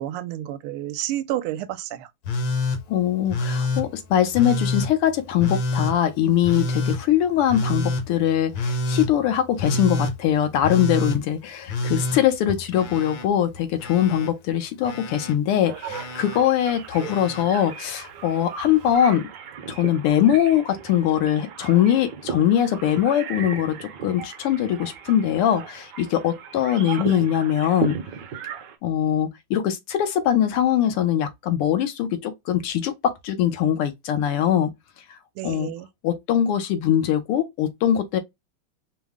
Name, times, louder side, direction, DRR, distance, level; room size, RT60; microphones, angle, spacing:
voice 1, 0.0-2.1 35.4-35.9, right 13 dB, 80° right, 1.4 m, -30 dB
Telephone, 2.3-2.8 3.3-3.9 4.3-4.9 5.4-6.0 6.4-7.0 7.5-8.0 8.5-9.1 9.6-10.1 10.6-11.2 11.7-13.3 13.5-14.3 14.8-15.3 15.9-16.4 16.9-17.4 18.6-18.7, left 2 dB, 65° left, 1.5 m, -27 dB
voice 2, 2.9-19.3 19.7-28.0 28.8-34.7 35.4-35.7 36.0-38.2, left 10 dB, 85° left, 1.8 m, -22 dB
sound 1, 15.6-28.8, right 6 dB, 65° right, 1.2 m, -36 dB
5.1 x 2.1 x 3.6 m
omnidirectional pair, 2.4 m